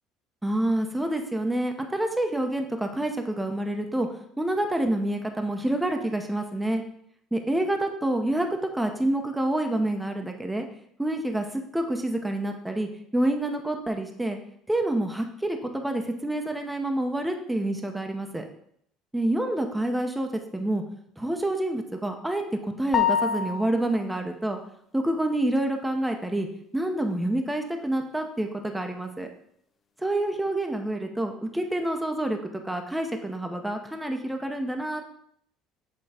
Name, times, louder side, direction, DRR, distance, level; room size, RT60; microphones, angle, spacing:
voice 1, 0.4-4.1 4.4-6.8 7.3-8.5 8.7-10.7 11.0-14.4 14.7-18.4 19.1-20.8 21.2-24.6 24.9-26.5 26.7-29.3 30.0-35.0, right 1 dB, 5° right, 4 dB, 0.8 m, -27 dB
sound 1, 22.9-24.0, left 8 dB, 35° left, 0.6 m, -25 dB
7.1 x 3.2 x 4.8 m, 0.70 s
supercardioid pair, 85°, 0 cm